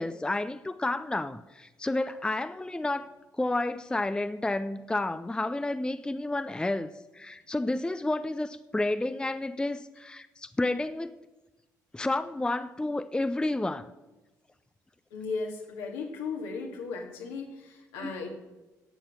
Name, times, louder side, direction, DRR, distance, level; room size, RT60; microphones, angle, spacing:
voice 1, 0.0-3.1 3.4-11.2 11.9-13.9 18.0-18.1, left 2 dB, 10° left, 0.5 m, -30 dB
voice 2, 15.1-18.3, left 4 dB, 70° left, 2.0 m, -36 dB
11.5 x 8.0 x 6.1 m
figure-of-eight pair, 45°, 9 cm